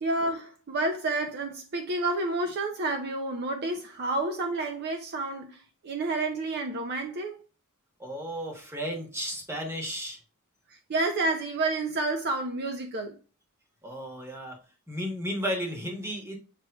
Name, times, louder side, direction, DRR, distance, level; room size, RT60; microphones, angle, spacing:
voice 1, 0.0-7.4 10.9-13.2, right 2 dB, 50° right, 0.5 m, -30 dB
voice 2, 8.0-10.2 13.8-14.6 14.9-16.4, equal, 10° right, 1.1 m, -34 dB
6.6 x 3.1 x 2.2 m
head